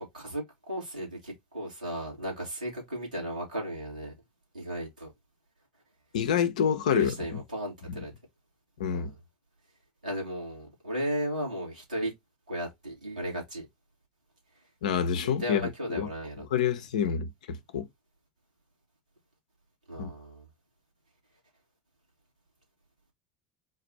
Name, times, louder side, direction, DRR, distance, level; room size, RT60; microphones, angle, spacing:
voice 1, 0.0-4.1 4.5-5.1 6.9-8.1 8.9-9.2 10.0-12.1 12.5-13.7 15.4-16.5 19.9-20.5, equal, 85° right, 2.1 m, -35 dB
voice 2, 6.1-7.1 8.8-9.1 14.8-15.6 15.9-16.1 16.5-17.9 20.0-20.1, left 8 dB, 70° left, 0.6 m, -27 dB
3.8 x 2.5 x 3.9 m
figure-of-eight pair, 75°, 4 cm